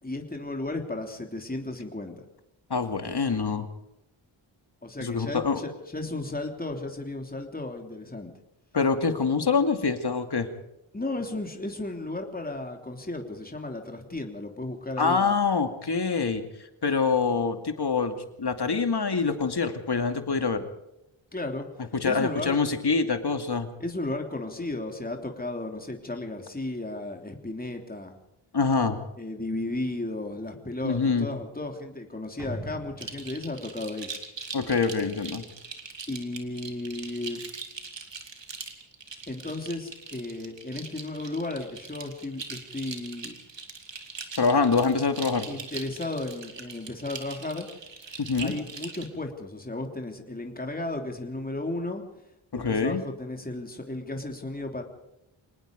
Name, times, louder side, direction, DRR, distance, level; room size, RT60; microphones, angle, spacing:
voice 1, 0.0-2.2 4.8-8.3 10.9-15.4 21.3-21.7 22.0-22.6 23.8-28.1 29.2-34.1 36.1-37.4 39.3-43.3 45.5-47.7 48.4-52.0 52.5-54.8, left 2 dB, 15° left, 3 dB, 3.1 m, -34 dB
voice 2, 2.7-3.7 5.0-5.6 8.7-10.5 15.0-16.4 16.8-20.6 21.9-23.7 28.5-29.0 30.8-31.3 34.5-35.4 44.4-45.5 48.2-48.5 52.5-53.0, left 4 dB, 50° left, 7 dB, 2.5 m, -25 dB
sound 1, 32.4-34.9, equal, 5° right, 6.2 m, -41 dB
sound 2, 33.0-49.1, right 4 dB, 60° right, 2.8 m, -41 dB
25.5 x 19.0 x 5.3 m, 0.86 s
wide cardioid pair, 70°, 50 cm